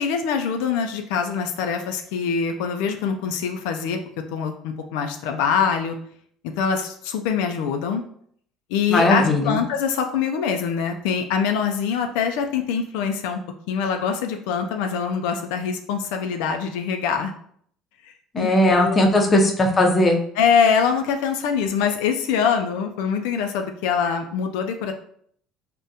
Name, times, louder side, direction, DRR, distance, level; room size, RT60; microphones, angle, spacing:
voice 1, 0.0-4.0 4.3-6.0 6.6-8.0 8.7-13.4 13.7-17.3 18.0-19.1 20.4-24.9, left 6 dB, 85° left, 5 dB, 0.3 m, -24 dB
voice 2, 8.9-9.6 18.3-20.2, left 1 dB, 25° left, 1 dB, 0.5 m, -18 dB
3.5 x 2.1 x 2.7 m, 0.63 s
cardioid pair, 125°, 0 cm